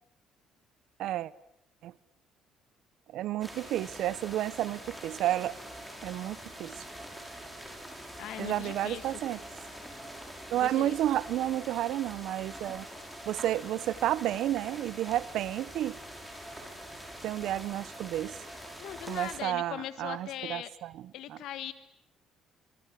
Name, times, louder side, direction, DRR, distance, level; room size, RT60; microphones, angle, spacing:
voice 1, 1.0-1.3 1.8-1.9 3.1-5.5 6.0-6.9 8.4-9.4 10.5-12.9 13.3-16.0 17.2-18.4 19.1-20.9 21.3-21.4, right 13 dB, 65° right, 1.1 m, -31 dB
sound 1, 3.4-19.4, right 1 dB, ahead, 6.4 m, -45 dB
voice 2, 8.2-9.1 10.6-10.9 18.8-20.7 21.1-21.7, left 12 dB, 70° left, 1.6 m, -40 dB
26.0 x 25.5 x 8.5 m
cardioid pair, 145°, 0 cm